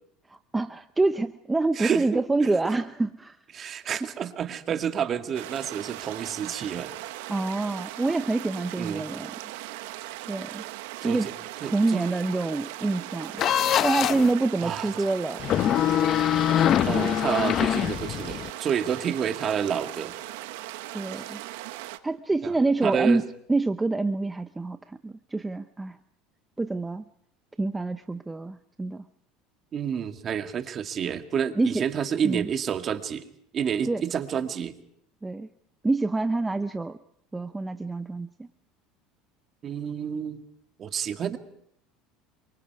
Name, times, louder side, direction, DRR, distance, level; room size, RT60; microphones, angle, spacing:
voice 1, 0.3-3.4 7.3-9.3 10.3-10.6 11.0-11.3 11.6-13.4 13.8-15.6 20.9-21.4 22.0-23.2 23.5-26.0 26.6-27.0 27.6-29.0 31.6-31.8 32.2-32.5 33.9-34.0 35.2-35.5 35.8-37.0 37.3-38.5, right 3 dB, 15° right, 10 dB, 0.8 m, -26 dB
voice 2, 1.8-2.5 3.5-6.9 8.8-9.1 11.0-11.3 11.6-12.0 14.6-14.9 16.9-20.1 21.2-21.3 22.4-22.5 22.8-23.2 29.7-33.2 33.5-34.7 39.6-40.5 40.8-41.4, right 8 dB, 40° right, 7 dB, 2.2 m, -29 dB
sound 1, 5.3-22.0, right 17 dB, 80° right, 1.3 m, -39 dB
sound 2, 13.4-14.3 15.4-18.5, left 10 dB, 45° left, 0.8 m, -23 dB
28.5 x 24.5 x 4.8 m, 0.69 s
supercardioid pair, 95°, 0 cm